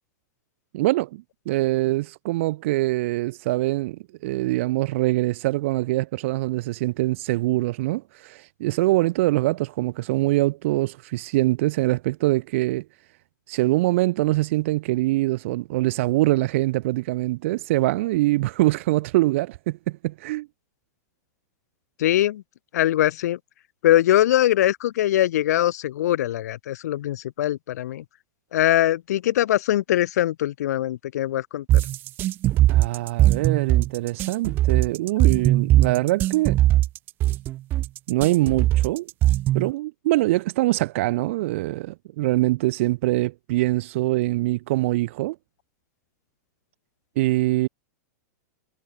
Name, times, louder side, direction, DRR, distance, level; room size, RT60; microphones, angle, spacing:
voice 1, 0.7-12.8 13.5-20.5 32.7-36.6 38.1-39.1 39.5-45.3 47.2-47.7, right 18 dB, 50° right, 1.4 m, -23 dB
voice 2, 22.0-22.4 22.7-23.4 23.8-28.0 28.5-31.8, left 13 dB, 70° left, 1.1 m, -22 dB
sound 1, 31.7-39.7, right 14 dB, 20° right, 0.6 m, -20 dB
supercardioid pair, 170°, 9 cm